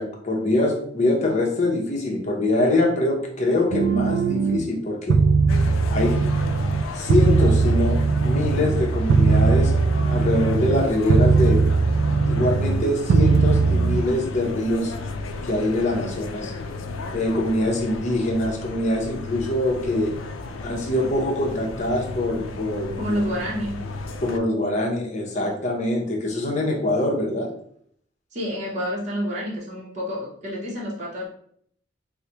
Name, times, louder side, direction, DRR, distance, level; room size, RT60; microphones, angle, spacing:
voice 1, 0.0-5.2 5.9-6.3 6.9-9.7 10.1-11.6 12.2-14.9 15.4-16.5 17.1-20.1 20.6-23.2 24.2-27.5, left 1 dB, 35° left, 0 dB, 0.7 m, -24 dB
sound 1, 3.7-4.6 5.1-6.8 7.1-10.8 11.1-12.8 13.1-14.0, right 4 dB, 70° right, 0.3 m, -19 dB
sound 2, 5.5-24.4, left 3 dB, 85° left, 0.4 m, -34 dB
voice 2, 23.0-23.8 28.3-31.3, equal, 35° right, -5 dB, 0.8 m, -28 dB
4.7 x 2.1 x 2.8 m, 0.64 s
head